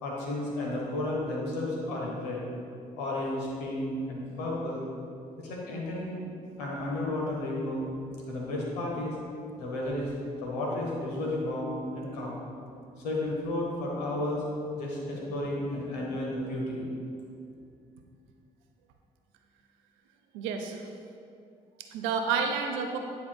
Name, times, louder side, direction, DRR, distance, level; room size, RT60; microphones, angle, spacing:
voice 1, 0.0-2.4 3.0-4.8 5.4-6.2 6.6-7.9 8.3-9.2 9.6-10.1 10.4-12.4 13.0-14.4 14.8-16.9, left 1 dB, 85° left, -3 dB, 1.1 m, -32 dB
voice 2, 20.3-20.9 21.8-23.0, right 5 dB, 75° right, 4 dB, 0.6 m, -30 dB
9.7 x 4.6 x 2.2 m, 2.5 s
hypercardioid pair, 45°, 20 cm